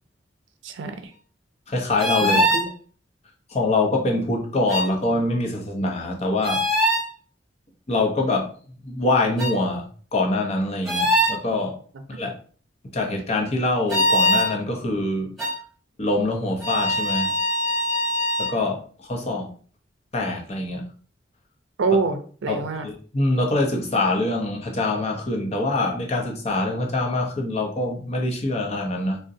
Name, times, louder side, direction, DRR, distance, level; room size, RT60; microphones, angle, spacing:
voice 1, 0.6-1.1 2.2-2.7 21.8-22.9, right 4 dB, 90° right, 7 dB, 0.4 m, -25 dB
voice 2, 1.7-2.4 3.5-6.6 7.9-8.5 8.8-11.8 12.1-12.4 12.9-15.3 16.0-17.4 18.4-19.5 20.1-20.8 22.5-29.2, left 2 dB, 35° left, 1 dB, 0.6 m, -24 dB
sound 1, 2.0-2.7 4.7-4.9 6.4-7.1 9.4-9.5 10.8-11.4 13.9-14.5 15.4-15.6 16.6-18.5, equal, ahead, 1.0 m, -22 dB
3.7 x 2.1 x 2.6 m, 0.43 s
head